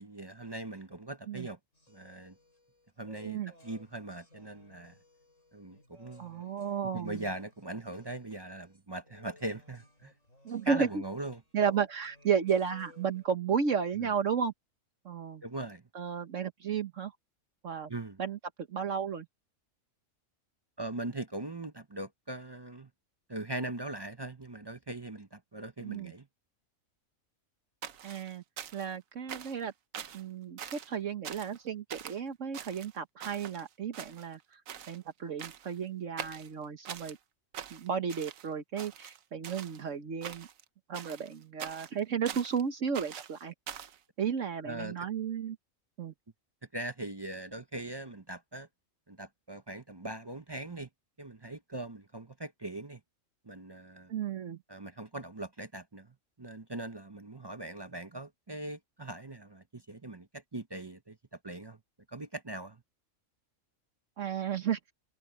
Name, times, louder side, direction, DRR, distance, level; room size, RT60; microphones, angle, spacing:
voice 1, 0.0-1.6 1.9-2.3 3.0-5.0 5.5-6.4 6.9-10.1 10.6-11.4 14.0-14.1 15.4-15.8 17.9-18.2 20.8-22.9 23.3-26.3 44.7-45.1 46.7-48.7 49.1-50.9 51.2-53.0 53.5-54.1 54.7-56.1 56.4-61.2 61.4-61.8 62.1-62.8, right 2 dB, 25° right, 0.6 m, -41 dB
sound 1, 1.7-13.3, left 1 dB, 70° left, 8.7 m, -61 dB
voice 2, 6.2-7.2 10.4-10.9 11.5-14.5 15.0-15.4 15.9-17.1 17.6-17.9 18.2-18.4 18.7-19.3 25.8-26.1 28.0-28.4 28.7-29.7 30.1-34.6 34.9-37.2 37.7-40.5 40.9-43.5 44.2-45.6 46.0-46.1 54.1-54.6 64.2-64.8, right 7 dB, 70° right, 1.5 m, -33 dB
sound 2, 27.8-29.0 29.3-29.6 29.9-30.2 30.6-30.9 31.2-31.6 31.9-32.2 32.5-33.6 33.9-34.4 34.7-35.0 35.4-35.8 36.2-37.2 37.5-38.5 38.8-39.8 40.2-40.6 40.9-42.6 42.9-44.0, right 9 dB, 90° right, 1.3 m, -44 dB
omnidirectional pair, 1.4 m